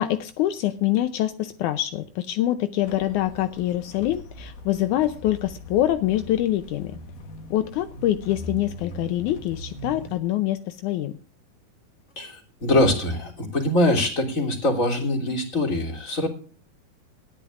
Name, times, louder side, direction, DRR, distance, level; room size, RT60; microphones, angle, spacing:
voice 1, 0.0-7.0 7.5-11.1, left 13 dB, 85° left, 10 dB, 1.7 m, -25 dB
sound 1, 2.8-10.2, equal, 65° left, 3.0 m, -40 dB
voice 2, 12.2-16.3, left 1 dB, 20° left, 0 dB, 3.1 m, -23 dB
20.5 x 14.0 x 2.5 m, 0.42 s
omnidirectional pair, 4.4 m